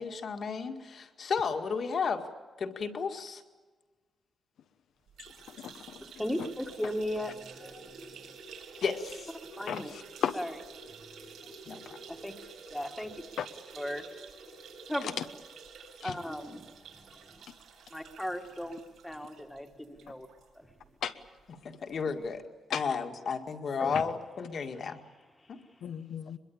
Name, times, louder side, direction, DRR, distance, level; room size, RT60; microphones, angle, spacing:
voice 1, 0.0-2.2 2.6-3.4 8.8-9.3 11.7-12.0 21.6-22.4 22.7-25.0 25.5-25.6, left 5 dB, 45° left, 6 dB, 2.0 m, -33 dB
sound 1, 5.1-20.5 20.8-20.9 21.2-21.3 22.3-22.4, right 5 dB, 70° right, 7.8 m, -50 dB
voice 2, 5.6-6.0 6.4-6.5 9.7-10.3 13.4-13.5 15.0-15.2 16.0-16.2 21.0-21.1 22.7-22.8 23.9-24.0 25.8-26.4, left 9 dB, 80° left, 8 dB, 1.2 m, -34 dB
voice 3, 6.2-7.3 7.6-7.7 9.6-9.9 10.3-10.5 12.2-12.3 12.7-13.1 13.8-14.0 14.9-15.1 16.0-16.6 17.9-18.8 19.0-19.7 20.0-20.3 23.8-23.9, equal, 5° left, 5 dB, 1.6 m, -35 dB
23.5 x 22.0 x 8.6 m, 1.3 s
wide cardioid pair, 175°, 0 cm